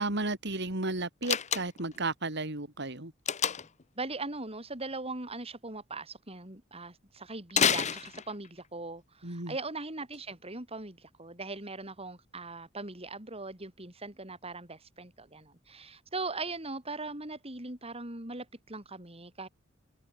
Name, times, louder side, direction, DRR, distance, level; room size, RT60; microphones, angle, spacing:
voice 1, 0.0-3.1 9.2-9.5, right 2 dB, 55° right, 3.7 m, -33 dB
Slam, 1.2-2.0 3.3-3.8 7.5-8.6, left 8 dB, 35° left, 0.8 m, -28 dB
voice 2, 4.0-19.5, right 3 dB, 30° right, 6.8 m, -40 dB
head